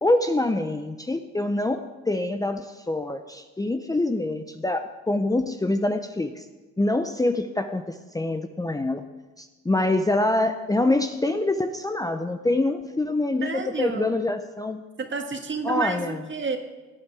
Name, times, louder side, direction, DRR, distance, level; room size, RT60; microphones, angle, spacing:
voice 1, 0.0-6.4 6.8-9.0 9.4-14.8 15.6-16.2, left 2 dB, 10° left, 7 dB, 0.7 m, -25 dB
voice 2, 13.4-14.1 15.0-16.6, right 4 dB, 40° right, 5 dB, 1.9 m, -30 dB
17.5 x 9.5 x 4.8 m, 1.2 s
cardioid pair, 90°, 30 cm